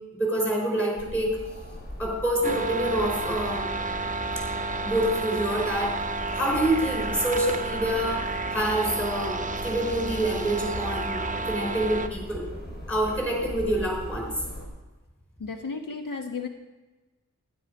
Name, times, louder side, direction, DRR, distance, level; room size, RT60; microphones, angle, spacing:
voice 1, 0.1-1.4 2.0-3.7 4.8-6.0 6.3-8.2 8.5-12.5 12.9-14.3, right 1 dB, 5° left, 0 dB, 4.8 m, -27 dB
sound 1, 0.9-14.7, equal, 30° left, 3.8 m, -39 dB
sound 2, 2.4-12.1, right 3 dB, 25° right, 0.7 m, -31 dB
voice 2, 15.4-16.5, left 4 dB, 90° left, 5 dB, 1.3 m, -33 dB
12.5 x 10.5 x 5.4 m, 1.2 s
wide cardioid pair, 90°, 32 cm